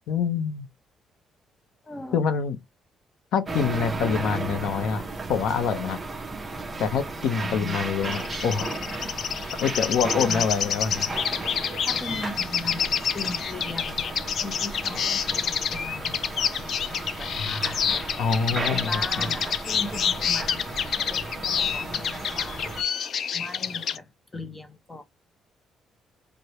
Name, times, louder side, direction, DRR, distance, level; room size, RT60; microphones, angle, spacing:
voice 1, 0.1-0.7 2.1-2.6 3.3-5.0 5.3-6.0 6.8-8.7 9.6-11.1 17.4-17.6 18.2-18.9 19.2-19.3, left 6 dB, 80° left, 0.7 m, -26 dB
voice 2, 1.8-2.2 7.4-7.8 10.2-10.5 11.8-14.2 14.4-16.5 16.9-17.8 18.7-22.6 23.3-25.0, left 2 dB, 15° left, 0.7 m, -38 dB
sound 1, 3.5-22.8, right 3 dB, 20° right, 0.6 m, -34 dB
sound 2, 8.0-24.0, left 7 dB, 50° left, 0.3 m, -28 dB
4.7 x 2.1 x 2.9 m
cardioid pair, 155°, 0 cm